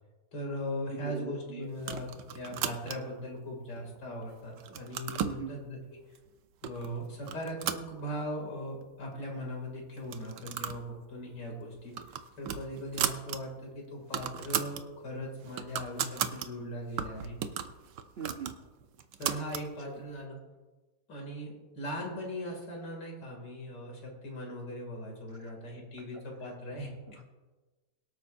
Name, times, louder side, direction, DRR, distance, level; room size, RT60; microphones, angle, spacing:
voice 1, 0.3-5.8 6.6-11.9 12.4-17.4 19.2-20.4 21.1-26.9, equal, 70° left, 0 dB, 3.2 m, -39 dB
voice 2, 0.9-1.7 5.2-5.5 18.2-18.5 19.9-20.0 25.4-25.5 27.1-27.2, right 7 dB, 50° right, 3 dB, 0.7 m, -41 dB
sound 1, 1.8-3.2 3.8-4.3 4.6-5.4 6.2-6.3 6.6-6.9 7.2-8.5 8.8-8.9 9.1-9.2 10.0-10.9 11.2-11.4 11.7-13.4 13.7-13.8 14.0-14.8 15.3-16.5 17.0-19.7, right 9 dB, 75° right, 1.3 m, -36 dB
23.0 x 8.7 x 2.6 m, 1.2 s
omnidirectional pair, 1.9 m